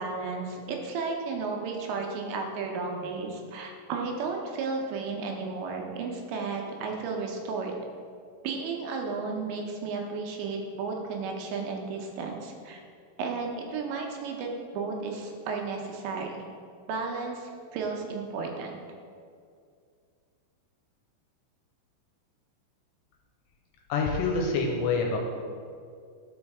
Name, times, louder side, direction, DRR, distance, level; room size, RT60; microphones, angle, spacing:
voice 1, 0.0-7.7 8.4-12.8 13.2-16.5 16.9-18.7, right 4 dB, 80° right, 1 dB, 3.0 m, -33 dB
voice 2, 23.9-25.2, left 4 dB, 80° left, 1 dB, 2.7 m, -26 dB
12.0 x 5.1 x 3.5 m, 2.2 s
omnidirectional pair, 5.2 m